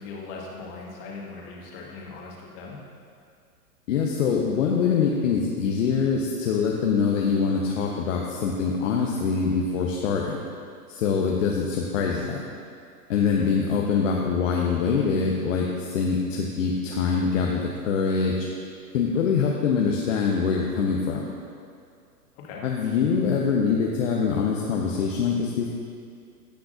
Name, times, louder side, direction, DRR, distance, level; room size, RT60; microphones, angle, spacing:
voice 1, 0.0-2.8 13.2-13.5 22.4-22.6, left 4 dB, 40° left, -2 dB, 1.8 m, -39 dB
voice 2, 3.9-10.4 10.9-12.4 13.1-18.5 18.9-21.3 22.6-25.7, left 5 dB, 55° left, -1 dB, 1.0 m, -24 dB
17.0 x 5.8 x 2.6 m, 2.3 s
figure-of-eight pair, 115°, 47 cm